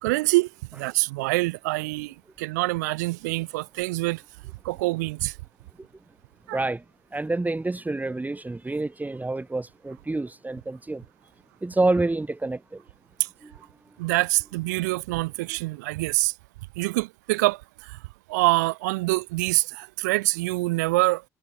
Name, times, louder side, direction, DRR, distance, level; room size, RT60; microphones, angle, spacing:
voice 1, 0.0-4.2 4.6-5.4 6.5-6.6 13.2-13.3 14.0-16.3 16.8-18.0 18.3-21.2, right 22 dB, 85° right, 1.7 m, -25 dB
voice 2, 6.5-6.8 7.1-11.0 11.6-12.8 13.4-13.6, right 2 dB, 20° right, 2.2 m, -28 dB
hypercardioid pair, 55°, 9 cm